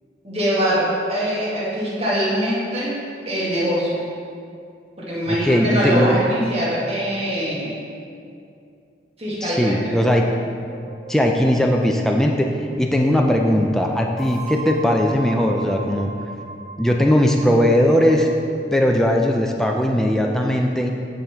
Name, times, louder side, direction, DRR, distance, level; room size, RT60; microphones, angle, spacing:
voice 1, 0.2-2.9 3.2-4.0 5.0-7.8 9.2-10.0, equal, 35° right, -8 dB, 1.8 m, -23 dB
voice 2, 5.3-6.1 9.4-10.2 11.1-16.1 16.8-18.3 18.7-20.9, equal, 5° left, 1 dB, 0.3 m, -19 dB
sound 1, 10.7-13.0 14.2-18.4, right 3 dB, 35° left, 1.0 m, -38 dB
9.5 x 3.8 x 4.4 m, 2.5 s
head